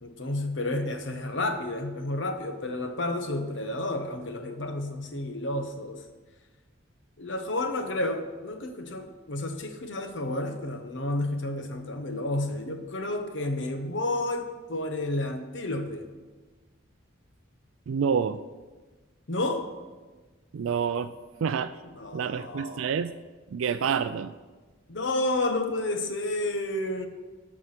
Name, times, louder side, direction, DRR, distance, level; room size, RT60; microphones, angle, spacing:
voice 1, 0.0-6.0 7.2-16.1 19.3-19.7 21.8-23.0 24.9-27.1, left 2 dB, 60° left, 6 dB, 1.0 m, -31 dB
voice 2, 17.9-18.4 20.5-21.1 21.4-21.7 22.1-23.1 23.5-24.3, right 6 dB, 75° right, 11 dB, 0.3 m, -27 dB
13.0 x 4.8 x 5.8 m, 1.3 s
head